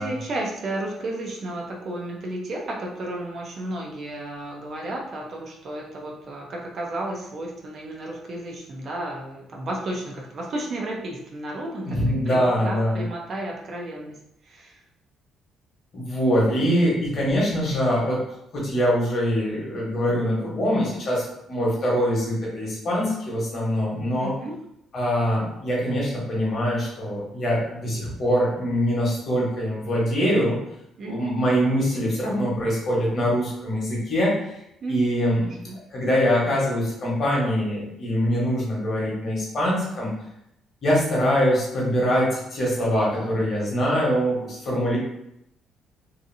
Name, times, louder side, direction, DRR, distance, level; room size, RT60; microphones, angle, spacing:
voice 1, 0.0-11.9 12.3-14.2 14.4-14.7 24.2-24.6 31.0-31.4 34.8-35.0 35.6-35.8, right 1 dB, 40° right, -1 dB, 0.5 m, -33 dB
voice 2, 11.8-13.0 15.9-18.2 18.5-24.3 24.9-30.6 31.0-34.6 34.9-35.6 35.9-40.1 40.8-45.0, equal, 40° left, -5 dB, 1.0 m, -23 dB
2.7 x 2.5 x 2.6 m, 0.79 s
cardioid pair, 165°, 0 cm